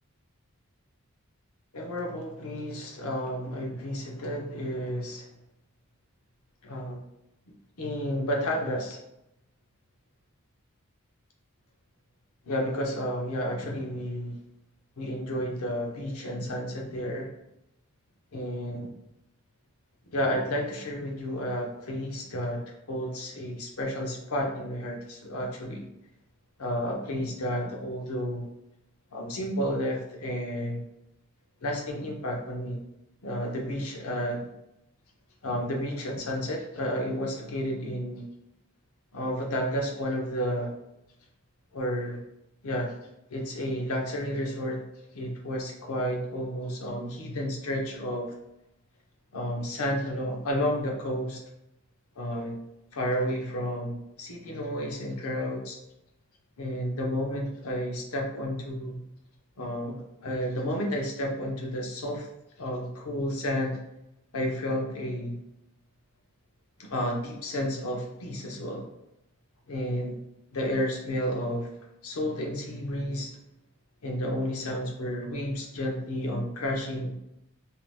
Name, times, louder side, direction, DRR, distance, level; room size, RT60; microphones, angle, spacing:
voice 1, 1.7-5.2 6.6-7.0 7.8-9.0 12.5-14.4 15.0-17.3 18.3-18.9 20.1-25.9 26.6-28.5 29.1-30.8 31.6-32.8 33.2-34.5 35.4-38.3 39.1-40.7 41.7-42.2 42.6-42.9 43.3-44.8 45.1-48.3 49.3-51.4 52.2-52.6 52.9-55.8 56.6-59.0 59.6-62.3 62.6-63.8 64.3-65.4 66.8-68.9 69.7-70.2 70.5-71.7 72.0-73.3 74.0-77.1, equal, 90° left, 0 dB, 0.7 m, -31 dB
2.8 x 2.1 x 3.2 m, 0.85 s
head